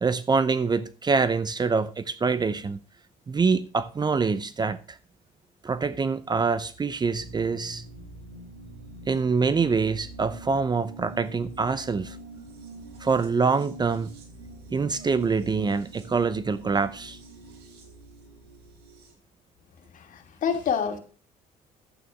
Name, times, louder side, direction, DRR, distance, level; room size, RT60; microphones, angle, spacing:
voice 1, 0.0-2.8 3.3-5.0 5.6-7.8 9.1-12.2 13.0-14.1 14.7-17.2, right 4 dB, 25° right, 0.7 m, -25 dB
sound 1, 7.1-19.1, right 2 dB, 70° right, 4.0 m, -45 dB
voice 2, 19.9-21.0, left 7 dB, 50° left, 2.6 m, -27 dB
11.5 x 8.7 x 4.8 m
cardioid pair, 110°, 17 cm